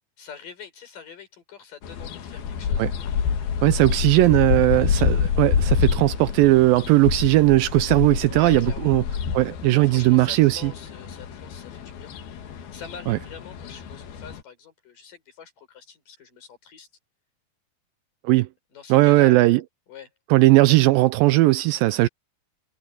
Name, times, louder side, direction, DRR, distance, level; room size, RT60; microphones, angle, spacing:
voice 1, 0.2-2.9 8.2-8.9 9.7-16.9 18.7-19.4 19.9-20.1, left 7 dB, 60° left, 5.9 m, -44 dB
sound 1, 1.8-14.4, left 7 dB, 80° left, 3.9 m, -27 dB
voice 2, 3.6-9.0 9.4-10.7 13.1-13.2 18.2-18.5 18.9-19.6 20.3-22.1, right 19 dB, 80° right, 2.2 m, -18 dB
omnidirectional pair, 4.3 m